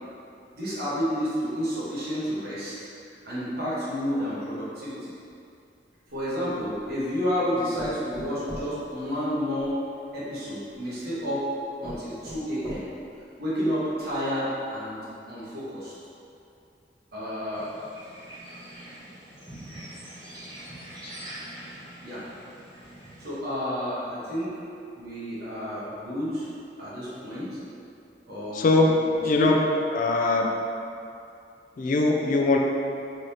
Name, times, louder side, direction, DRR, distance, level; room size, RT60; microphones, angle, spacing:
voice 1, 0.5-2.7 3.2-5.1 6.1-9.8 10.1-11.5 11.8-12.9 13.4-15.9 17.1-17.7 22.0-22.2 23.2-24.7 25.0-26.5 26.8-27.6 28.3-29.5, equal, 60° right, -9 dB, 1.2 m, -30 dB
sound 1, 6.1-7.0 7.8-9.7 10.7-10.8 11.4-11.5 11.8-13.2 13.7-13.8 14.1-14.2, equal, 20° left, 1.4 m, -40 dB
sound 2, 17.5-23.4, right 1 dB, 25° right, 1.3 m, -43 dB
voice 2, 28.5-29.6 29.9-30.6 31.8-32.6, left 2 dB, 45° left, 1 dB, 0.3 m, -22 dB
3.9 x 3.2 x 2.8 m, 2.6 s
head